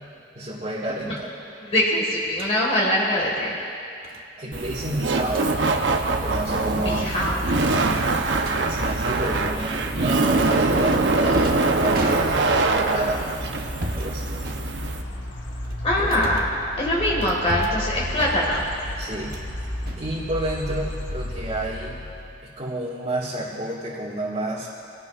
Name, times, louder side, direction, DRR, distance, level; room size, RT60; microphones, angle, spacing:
voice 1, 0.4-1.3 4.4-5.5 6.2-7.1 7.7-13.3 13.9-14.3 15.9-16.3 19.0-19.3 20.0-22.0 22.4-24.7, right 1 dB, 40° right, -8 dB, 2.0 m, -30 dB
voice 2, 1.7-3.6 6.8-7.5 15.8-16.5 16.8-18.6, left 1 dB, 35° left, -4 dB, 1.9 m, -23 dB
sound 1, 2.3-2.6 4.0-4.2 5.1-5.5 5.9-6.1 6.4-6.6 6.9-7.0 7.6-8.6 9.7-10.2 10.8-12.7 13.5-14.1 14.4-15.1 15.6-16.6 17.2-17.9 18.2-18.6 19.0-19.5 19.8-20.7, right 1 dB, 55° right, 1.2 m, -35 dB
Laughter, 4.5-15.0, right 3 dB, 80° right, 0.9 m, -23 dB
sound 2, 5.0-22.5, left 1 dB, 70° left, 1.4 m, -35 dB
24.5 x 17.0 x 2.5 m, 2.5 s
head